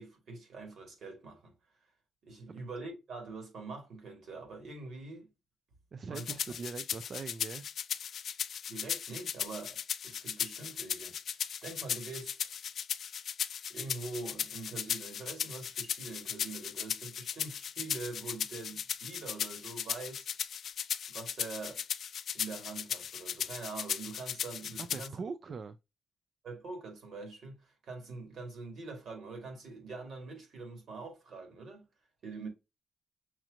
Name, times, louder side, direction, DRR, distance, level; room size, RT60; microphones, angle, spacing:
voice 1, 0.0-1.5 2.2-5.3 6.1-6.3 8.7-11.2 11.6-12.5 13.7-20.3 21.1-21.8 22.3-25.2 26.4-31.8 32.2-32.5, right 3 dB, 60° right, 2.2 m, -44 dB
voice 2, 5.9-7.7 24.8-25.8, right 5 dB, 40° right, 0.3 m, -41 dB
sound 1, 6.1-25.1, left 8 dB, 60° left, 0.3 m, -37 dB
6.1 x 2.9 x 2.4 m
wide cardioid pair, 170°, 0 cm